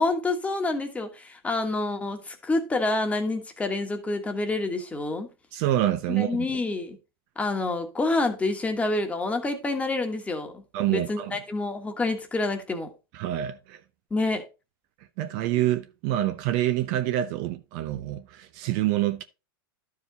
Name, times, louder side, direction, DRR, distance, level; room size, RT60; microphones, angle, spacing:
voice 1, 0.0-5.3 6.2-7.0 7.4-12.9 14.1-14.4, left 2 dB, 10° left, 1.4 m, -28 dB
voice 2, 5.5-6.5 10.7-11.4 13.1-13.8 15.2-19.2, right 13 dB, 50° right, 0.7 m, -26 dB
11.5 x 4.9 x 3.9 m
hypercardioid pair, 130°, 12 cm